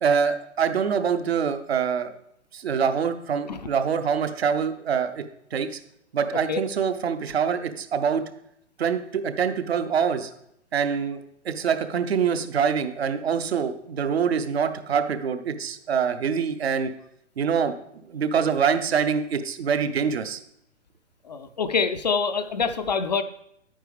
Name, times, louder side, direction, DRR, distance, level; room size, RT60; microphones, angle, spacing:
voice 1, 0.0-2.1 2.5-5.2 5.5-5.8 6.1-8.2 8.8-10.3 10.7-11.2 11.4-16.9 17.4-17.7 18.1-20.4, right 6 dB, 55° right, 9 dB, 0.9 m, -25 dB
voice 2, 21.2-23.2, left 5 dB, 40° left, 9 dB, 0.4 m, -25 dB
9.7 x 9.1 x 3.4 m, 0.74 s
figure-of-eight pair, 120°, 37 cm